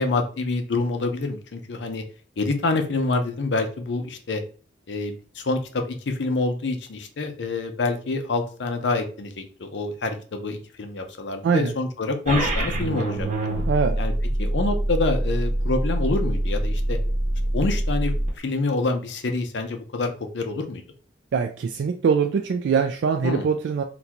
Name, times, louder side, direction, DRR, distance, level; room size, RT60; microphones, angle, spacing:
voice 1, 0.0-2.0 2.4-4.4 4.9-13.3 14.0-14.1 14.4-17.0 17.5-20.8 23.2-23.5, left 3 dB, 70° left, 6 dB, 0.6 m, -27 dB
sound 1, 12.3-18.3, right 1 dB, 45° right, 0.8 m, -25 dB
voice 2, 21.3-23.8, right 6 dB, 70° right, 5 dB, 0.3 m, -22 dB
3.9 x 2.2 x 2.9 m, 0.40 s
head